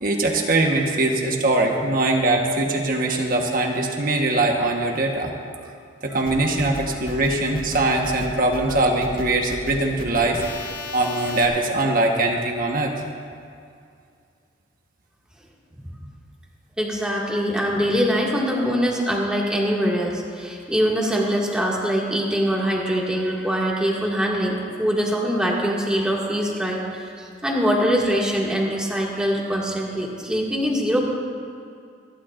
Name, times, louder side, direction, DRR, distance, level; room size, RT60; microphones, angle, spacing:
voice 1, 0.0-5.3 6.0-10.4 10.9-12.9, right 2 dB, 50° right, 1 dB, 1.2 m, -22 dB
sound 1, 6.3-11.4, left 2 dB, 50° left, 1.8 m, -35 dB
voice 2, 16.8-31.0, equal, 5° right, -4 dB, 2.0 m, -23 dB
27.0 x 11.5 x 2.5 m, 2.4 s
head